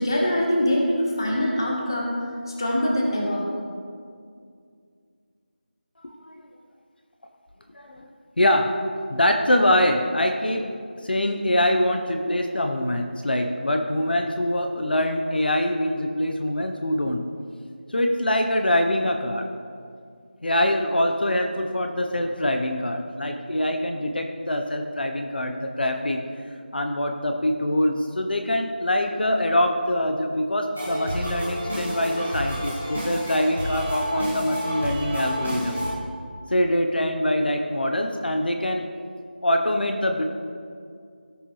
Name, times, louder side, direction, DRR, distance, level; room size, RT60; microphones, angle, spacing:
voice 1, 0.0-2.2 2.6-3.5, equal, 25° left, -2 dB, 1.4 m, -23 dB
voice 2, 6.0-6.3 7.7-8.1 8.4-10.7 11.0-17.3 17.9-19.5 20.4-26.3 26.7-35.8 36.5-38.9 39.4-40.2, left 1 dB, 65° left, 4 dB, 0.9 m, -24 dB
sound 1, 30.7-35.9, equal, 5° left, 0.3 m, -30 dB
17.5 x 6.4 x 3.2 m, 2.2 s
figure-of-eight pair, 180°, 6 cm